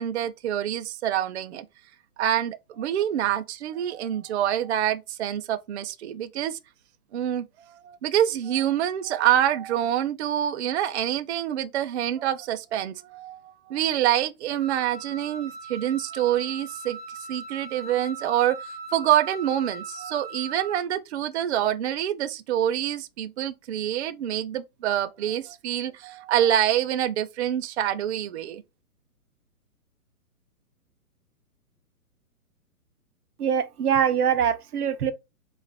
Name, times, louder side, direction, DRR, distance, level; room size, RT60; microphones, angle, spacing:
voice 1, 0.0-1.7 2.2-6.6 7.1-17.0 17.3-28.6, right 11 dB, 50° right, 0.5 m, -26 dB
Wind instrument woodwind instrument, 14.6-20.8, right 3 dB, 20° right, 1.5 m, -40 dB
voice 2, 33.4-35.1, right 8 dB, 90° right, 0.7 m, -23 dB
4.5 x 2.5 x 3.4 m
hypercardioid pair, 140°, 44 cm